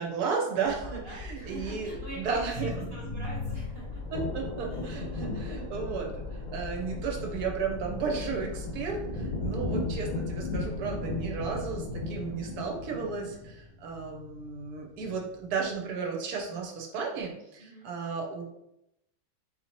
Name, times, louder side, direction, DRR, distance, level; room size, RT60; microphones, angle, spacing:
voice 1, 0.0-2.7 4.1-18.4, right 5 dB, 65° right, 0 dB, 1.1 m, -34 dB
sound 1, 0.6-13.6, left 3 dB, 80° left, 1.2 m, -42 dB
voice 2, 0.8-4.0 4.7-5.3 17.6-17.9, right 1 dB, 40° right, -5 dB, 1.0 m, -45 dB
sound 2, 2.5-15.5, left 3 dB, 25° left, 0.9 m, -45 dB
sound 3, 3.1-13.5, left 2 dB, 60° left, 1.1 m, -37 dB
4.3 x 2.7 x 2.9 m, 0.84 s
omnidirectional pair, 1.9 m